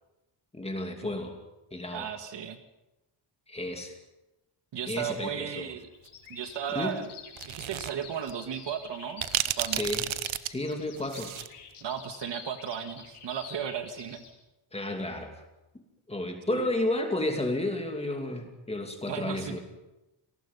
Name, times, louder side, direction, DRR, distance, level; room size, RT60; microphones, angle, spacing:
voice 1, 0.5-1.4 1.7-2.1 3.5-3.9 4.9-5.6 6.7-7.0 9.7-10.1 10.5-11.3 14.7-15.3 16.1-19.6, left 1 dB, 10° left, 3 dB, 2.7 m, -32 dB
voice 2, 1.9-2.6 4.7-5.9 6.3-7.1 7.5-9.2 9.6-9.9 11.8-14.3 16.5-16.7 19.1-19.6, right 8 dB, 60° right, 8 dB, 1.7 m, -35 dB
Bird vocalization bird call bird song, 5.9-14.3, left 6 dB, 90° left, 5.0 m, -48 dB
sound 1, 7.4-7.9 8.3-8.4 9.2-11.5, right 12 dB, 75° right, 1.0 m, -31 dB
27.0 x 19.0 x 5.5 m, 0.97 s
wide cardioid pair, 170°, 48 cm